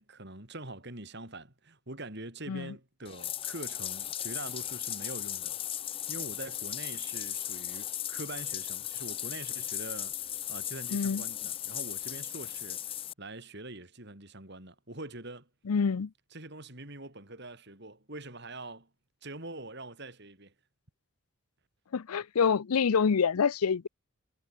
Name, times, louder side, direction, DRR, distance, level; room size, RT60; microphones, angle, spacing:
voice 1, 0.0-5.6 6.1-10.2 10.5-12.8 13.2-15.5 16.3-18.9 19.2-20.5, right 2 dB, 50° right, 4.8 m, -44 dB
Bathtub (filling or washing), 3.0-13.1, left 11 dB, 25° left, 0.4 m, -37 dB
voice 2, 10.9-11.2 15.7-16.1 21.9-23.9, left 6 dB, 85° left, 0.5 m, -26 dB
head